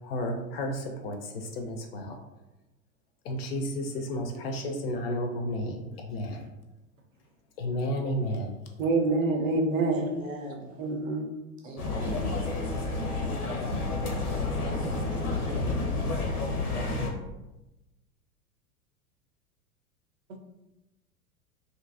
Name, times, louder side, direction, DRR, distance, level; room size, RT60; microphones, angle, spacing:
voice 1, 0.0-2.2 3.2-6.5 7.6-8.5 12.0-12.1, equal, 45° left, 4 dB, 0.4 m, -32 dB
voice 2, 8.8-10.1 10.8-11.3, right 3 dB, 65° right, 4 dB, 0.6 m, -26 dB
voice 3, 9.9-10.7 11.6-12.2 15.1-16.0, equal, 20° right, -1 dB, 0.6 m, -40 dB
sound 1, 11.8-17.1, left 2 dB, 85° left, 0.6 m, -30 dB
2.6 x 2.6 x 2.4 m, 0.99 s
figure-of-eight pair, 85°, 43 cm